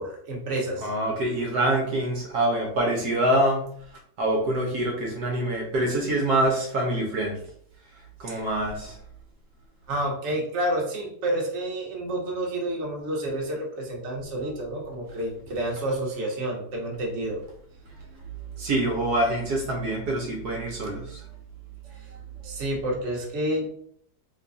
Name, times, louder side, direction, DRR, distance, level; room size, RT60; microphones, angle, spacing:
voice 1, 0.0-0.9 8.2-8.4 9.9-17.4 21.9-23.8, right 1 dB, 50° right, -2 dB, 1.1 m, -29 dB
voice 2, 0.8-3.6 4.2-7.4 8.2-9.0 18.6-21.2, right 1 dB, 70° right, -1 dB, 1.2 m, -25 dB
3.2 x 2.3 x 3.8 m, 0.65 s
omnidirectional pair, 1.8 m